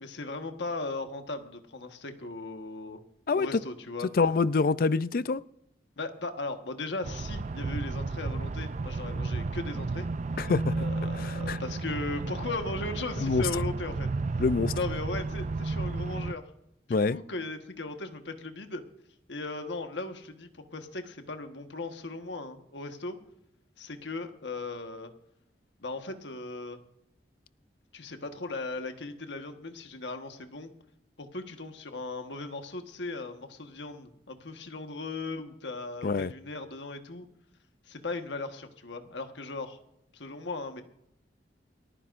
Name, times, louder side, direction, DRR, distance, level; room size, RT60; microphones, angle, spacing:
voice 1, 0.0-3.0 3.3-4.1 6.0-10.1 10.7-14.1 14.7-16.4 16.9-18.8 19.3-23.2 23.8-25.1 25.8-26.8 27.9-30.7 31.2-37.3 37.9-39.8 40.1-40.8, left 3 dB, 90° left, 1.4 m, -37 dB
voice 2, 3.3-3.6 4.2-5.4 10.4-10.7 11.2-11.6 13.2-13.4 14.4-14.7 16.9-17.2 36.0-36.3, left 4 dB, 55° left, 0.4 m, -25 dB
sound 1, 7.0-16.3, right 3 dB, 40° right, 0.4 m, -33 dB
29.0 x 10.0 x 2.6 m
head